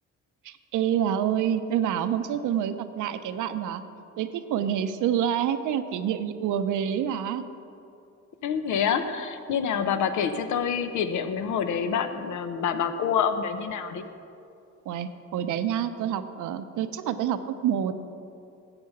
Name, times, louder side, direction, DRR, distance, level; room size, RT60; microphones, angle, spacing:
voice 1, 0.4-3.8 4.2-7.4 14.9-17.9, right 9 dB, 80° right, 10 dB, 0.8 m, -27 dB
voice 2, 8.4-14.0, left 7 dB, 75° left, 9 dB, 0.9 m, -27 dB
13.0 x 8.2 x 5.9 m, 2.6 s
cardioid pair, 90°, 30 cm